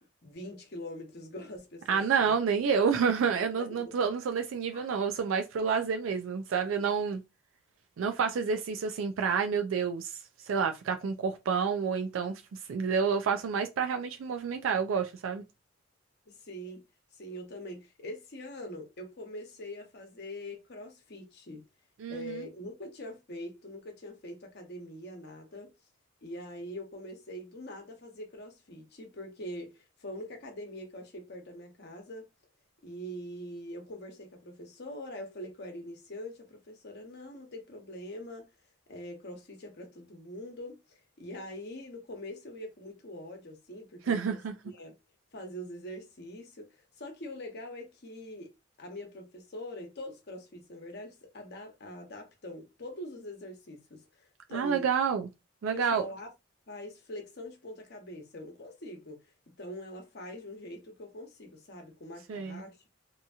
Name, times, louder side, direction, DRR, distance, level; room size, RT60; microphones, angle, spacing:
voice 1, 0.0-2.3 3.6-3.9 4.7-5.0 16.3-16.8 17.2-21.6 22.1-25.7 26.2-32.2 32.8-38.5 38.9-44.4 44.6-44.9 45.3-48.5 48.8-54.9 55.7-56.3 56.7-59.3 59.6-62.9, left 1 dB, 60° left, 0.9 m, -43 dB
voice 2, 1.9-7.2 8.0-10.2 10.5-12.4 12.7-15.4 22.0-22.5 44.1-44.5 54.5-55.3 55.6-56.0 62.3-62.6, right 6 dB, 85° right, 0.4 m, -29 dB
2.8 x 2.6 x 2.3 m
head